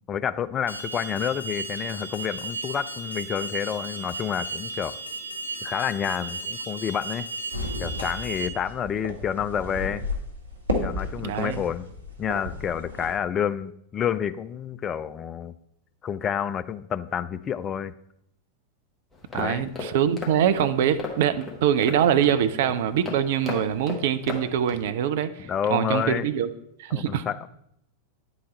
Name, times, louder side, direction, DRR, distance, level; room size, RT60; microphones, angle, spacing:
voice 1, 0.1-5.0 5.6-7.3 7.8-10.1 10.8-11.9 12.2-15.5 16.0-17.9 19.3-19.7 25.4-26.3 26.9-27.5, left 8 dB, 25° left, 14 dB, 0.3 m, -29 dB
Alarm, 0.7-8.5, right 2 dB, 90° right, 0.7 m, -35 dB
sound 1, 7.5-13.2, left 1 dB, 75° right, 1.2 m, -33 dB
voice 2, 11.2-11.6 19.3-26.5 26.8-27.2, right 9 dB, 55° right, 11 dB, 0.5 m, -24 dB
sound 2, 19.1-24.9, left 3 dB, 5° left, 1.4 m, -37 dB
9.7 x 3.9 x 4.2 m, 0.76 s
figure-of-eight pair, 90°, 0 cm